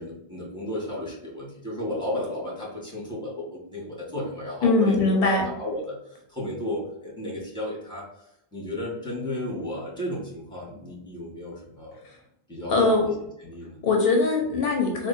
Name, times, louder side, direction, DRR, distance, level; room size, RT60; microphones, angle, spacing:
voice 1, 0.0-8.0 8.5-12.0 12.5-13.0 13.4-13.8, left 1 dB, 5° left, -5 dB, 1.3 m, -33 dB
voice 2, 4.6-5.5 12.0-12.2 12.7-13.1 13.8-15.1, left 3 dB, 70° left, 1 dB, 0.8 m, -21 dB
3.6 x 2.6 x 2.5 m, 0.78 s
omnidirectional pair, 1.0 m